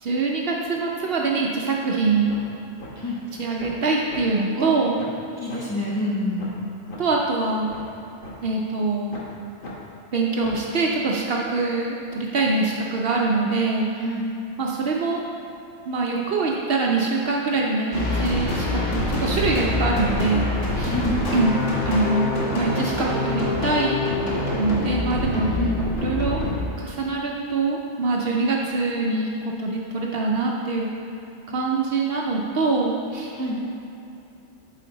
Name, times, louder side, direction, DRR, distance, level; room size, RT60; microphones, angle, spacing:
voice 1, 0.0-2.4 3.4-5.0 7.0-7.7 8.4-9.2 10.1-13.9 14.6-15.2 15.9-20.5 20.8-20.9 21.3-21.5 21.9-24.0 24.6-25.5 26.0-26.4 26.8-29.3 29.6-30.9 31.5-33.3, right 3 dB, 60° right, -1 dB, 0.8 m, -24 dB
sound 1, 1.9-2.0 2.3-2.5 2.8-2.9 3.3-3.9 4.1-4.2 4.6-4.7 5.0-5.2 5.5-5.6 6.0-6.1 6.4-6.6 6.9-7.0 7.4-8.3 8.7-8.8 9.1-9.3 9.6-9.7 10.1-10.7, left 2 dB, 50° left, 1.2 m, -39 dB
voice 2, 5.4-6.4 14.0-14.3 20.9-21.2 25.5-25.8 33.3-33.6, left 1 dB, 20° left, -7 dB, 1.0 m, -27 dB
sound 2, 17.9-26.7, left 2 dB, 80° left, 1.5 m, -25 dB
8.5 x 3.9 x 3.8 m, 2.8 s
omnidirectional pair, 1.2 m